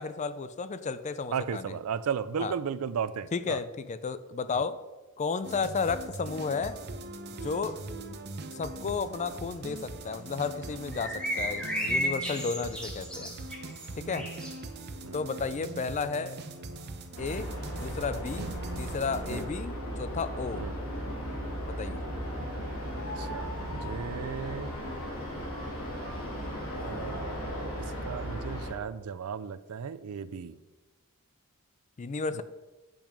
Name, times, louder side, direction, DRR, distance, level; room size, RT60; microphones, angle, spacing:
voice 1, 0.0-1.8 2.4-2.5 3.3-4.8 5.2-6.8 7.4-7.8 8.5-13.3 14.0-14.3 15.1-16.4 17.2-20.6 21.7-22.0 32.0-32.4, left 5 dB, 35° left, 13 dB, 0.4 m, -33 dB
voice 2, 1.3-3.6 14.2-14.3 15.0-15.2 18.4-18.5 19.3-19.5 20.6-20.7 22.9-24.8 26.7-30.5 32.3-32.4, right 7 dB, 75° right, 15 dB, 0.4 m, -35 dB
sound 1, 5.4-19.5, right 2 dB, 50° right, 0.8 m, -41 dB
sound 2, 10.9-14.6, equal, 5° left, 1.2 m, -33 dB
sound 3, 17.1-28.7, equal, 65° left, 2.8 m, -36 dB
8.7 x 5.9 x 5.1 m, 1.2 s
head